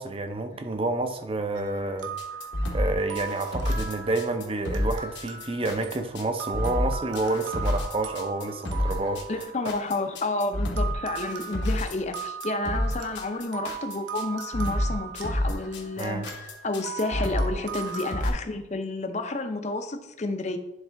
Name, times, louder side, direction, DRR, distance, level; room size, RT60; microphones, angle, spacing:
voice 1, 0.0-2.1 2.7-9.4 16.0-16.3, right 2 dB, 30° right, 0.6 m, -29 dB
sound 1, 1.5-10.2 10.8-18.2, right 7 dB, 80° right, 0.9 m, -39 dB
sound 2, 2.2-18.3, left 1 dB, 75° left, 1.2 m, -29 dB
voice 2, 9.3-20.6, left 2 dB, 35° left, 0.6 m, -30 dB
10.5 x 3.6 x 3.4 m
head